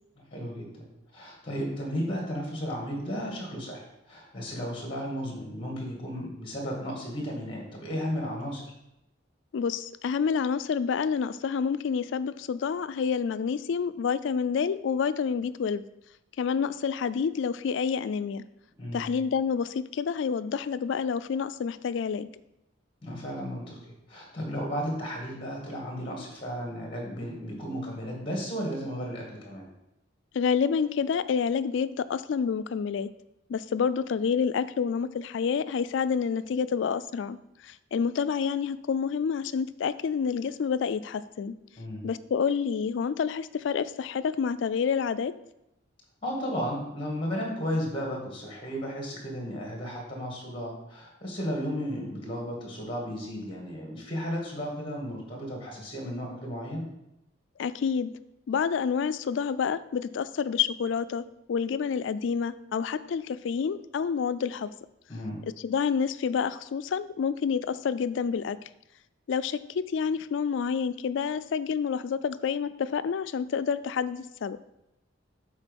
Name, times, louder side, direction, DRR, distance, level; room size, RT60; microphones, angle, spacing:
voice 1, 0.3-0.8 1.1-8.7 18.8-19.1 23.0-29.7 41.8-42.0 46.2-56.8 65.1-65.4, equal, 25° left, 0 dB, 1.9 m, -34 dB
voice 2, 9.5-15.8 16.4-18.4 18.9-22.3 30.3-33.1 33.5-37.4 37.6-41.5 42.0-45.3 57.6-58.1 58.5-64.7 65.6-68.6 69.3-74.6, left 6 dB, 70° left, 15 dB, 0.3 m, -28 dB
7.3 x 4.2 x 5.3 m, 0.86 s
head